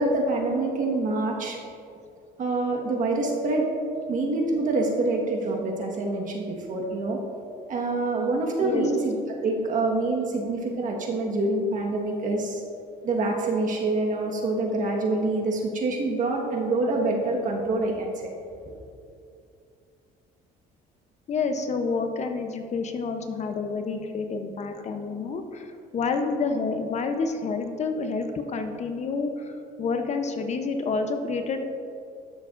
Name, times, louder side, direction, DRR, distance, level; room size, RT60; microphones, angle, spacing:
voice 1, 0.0-1.6 2.4-3.6 4.1-7.2 7.7-12.6 13.0-18.3, right 2 dB, 50° right, 0 dB, 1.4 m, -26 dB
voice 2, 21.3-29.3 29.8-31.6, left 4 dB, 40° left, 6 dB, 0.7 m, -28 dB
12.5 x 6.8 x 2.5 m, 2.5 s
cardioid pair, 110°, 17 cm